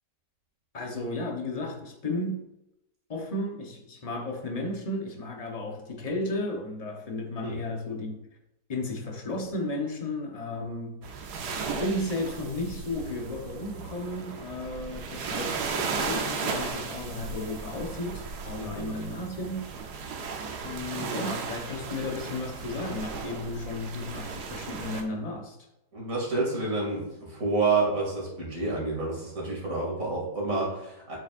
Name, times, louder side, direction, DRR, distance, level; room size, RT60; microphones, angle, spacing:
voice 1, 0.7-2.5 3.1-8.3 8.7-11.1 11.5-15.6 15.9-19.7 20.6-25.6, left 2 dB, 25° left, 2 dB, 0.9 m, -34 dB
sound 1, 11.0-25.0, right 5 dB, 70° right, 1.4 m, -35 dB
voice 2, 25.9-31.2, right 3 dB, 50° right, -3 dB, 2.9 m, -29 dB
7.9 x 7.0 x 2.5 m, 0.89 s
omnidirectional pair, 1.8 m